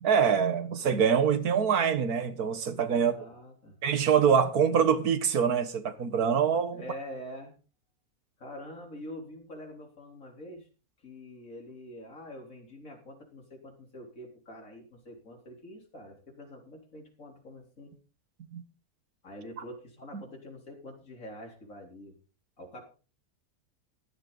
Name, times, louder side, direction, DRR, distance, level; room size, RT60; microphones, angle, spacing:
voice 1, 0.0-3.2 3.8-6.8 18.5-18.6 20.1-20.2, right 7 dB, 80° right, 1.8 m, -25 dB
voice 2, 2.9-3.8 6.7-7.5 8.4-10.7 11.0-17.9 19.2-22.1 22.6-22.8, left 1 dB, 60° left, 4.1 m, -45 dB
15.5 x 12.0 x 4.0 m
omnidirectional pair, 1.6 m